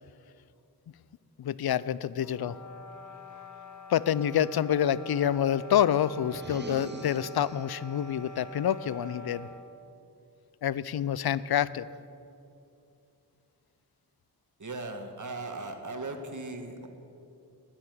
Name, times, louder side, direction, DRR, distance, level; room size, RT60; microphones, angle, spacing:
voice 1, 1.4-2.6 3.9-9.5 10.6-11.9, left 10 dB, 65° left, 18 dB, 0.5 m, -27 dB
sound 1, 2.2-9.7, equal, 45° left, 1.2 m, -46 dB
sound 2, 6.2-7.9, right 4 dB, 25° right, 0.6 m, -42 dB
voice 2, 14.6-16.9, right 2 dB, 45° right, 5 dB, 1.5 m, -38 dB
10.0 x 8.6 x 9.1 m, 2.6 s
wide cardioid pair, 55°, 40 cm